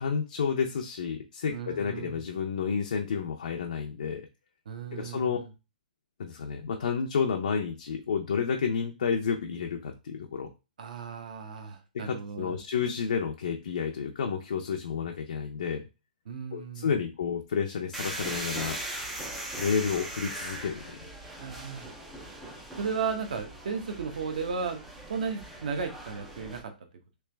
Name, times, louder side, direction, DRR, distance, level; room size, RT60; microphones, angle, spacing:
voice 1, 0.0-4.3 4.9-5.4 6.2-10.5 12.0-15.8 16.5-18.8 19.6-21.1, left 6 dB, 55° left, 2 dB, 0.5 m, -30 dB
voice 2, 1.5-2.2 4.7-5.5 10.8-12.6 16.3-17.0 21.3-21.9 22.8-26.7, right 5 dB, 55° right, 5 dB, 0.8 m, -35 dB
sound 1, 17.9-26.6, right 1 dB, 5° right, 0.3 m, -40 dB
3.3 x 3.0 x 3.3 m, 0.29 s
hypercardioid pair, 175°, 5 cm